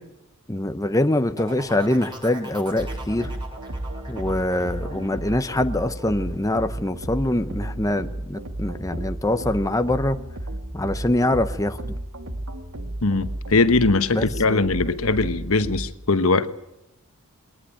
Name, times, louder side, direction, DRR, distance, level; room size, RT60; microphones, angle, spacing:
voice 1, 0.5-3.3 4.1-10.2 10.7-12.0 14.1-14.6, left 1 dB, 15° left, 9 dB, 0.7 m, -24 dB
sound 1, 1.4-7.0 7.4-7.8, right 2 dB, 20° right, 7.4 m, -41 dB
sound 2, 2.8-15.9, right 1 dB, 80° right, 2.1 m, -33 dB
voice 2, 13.0-16.5, left 3 dB, 70° left, 11 dB, 1.2 m, -21 dB
22.0 x 19.0 x 9.0 m, 0.89 s
head